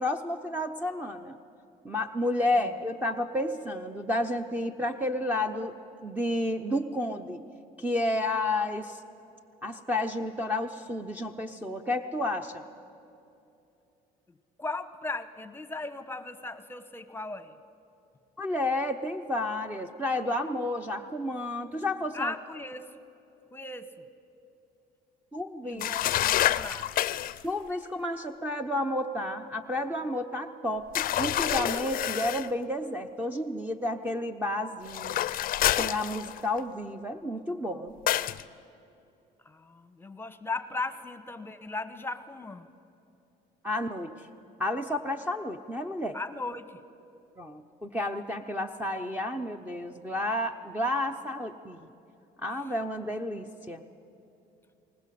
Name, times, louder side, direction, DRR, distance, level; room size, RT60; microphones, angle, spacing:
voice 1, 0.0-1.4 1.8-5.7 6.0-7.4 7.8-9.0 9.6-12.6 18.4-22.3 25.3-25.9 27.4-35.2 35.8-37.9 43.6-44.3 44.6-46.2 47.4-51.9 52.4-53.8, left 1 dB, 10° right, 6 dB, 0.8 m, -31 dB
voice 2, 14.3-17.5 22.1-22.9 23.5-23.9 25.6-26.9 39.4-42.7 46.1-46.8, left 3 dB, 15° left, 11 dB, 1.0 m, -37 dB
sound 1, 25.8-27.4 30.9-32.5 34.9-36.6 38.1-38.4, left 13 dB, 55° left, 0.5 m, -28 dB
20.0 x 19.5 x 7.6 m, 2.8 s
cardioid pair, 110°, 17 cm